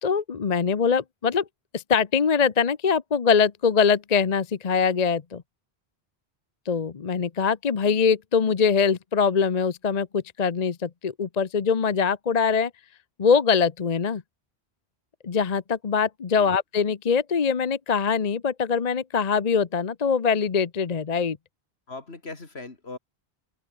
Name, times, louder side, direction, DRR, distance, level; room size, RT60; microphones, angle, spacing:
voice 1, 0.0-1.4 1.7-5.4 6.7-12.7 13.2-14.2 15.2-21.4, left 6 dB, 40° left, 0.9 m, -23 dB
voice 2, 21.9-23.0, left 3 dB, 75° left, 3.1 m, -39 dB
open air
omnidirectional pair, 1.1 m